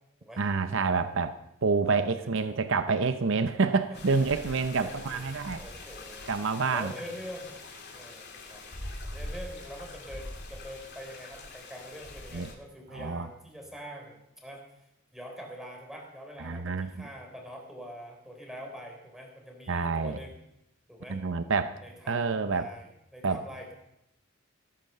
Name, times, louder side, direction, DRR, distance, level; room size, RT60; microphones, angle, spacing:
voice 1, 0.4-1.4 1.6-5.6 6.3-6.9 12.3-12.5 12.9-13.3 16.4-16.9 19.7-20.2 21.1-21.8 22.1-22.7 23.2-23.4, right 4 dB, 65° right, 10 dB, 0.8 m, -27 dB
voice 2, 2.2-2.6 4.1-7.6 7.9-8.6 9.1-14.6 15.1-20.4 20.9-21.2 21.8-23.7, equal, ahead, 0 dB, 3.7 m, -45 dB
sound 1, 3.9-12.5, left 2 dB, 55° left, 2.9 m, -43 dB
17.0 x 9.7 x 6.8 m, 0.82 s
head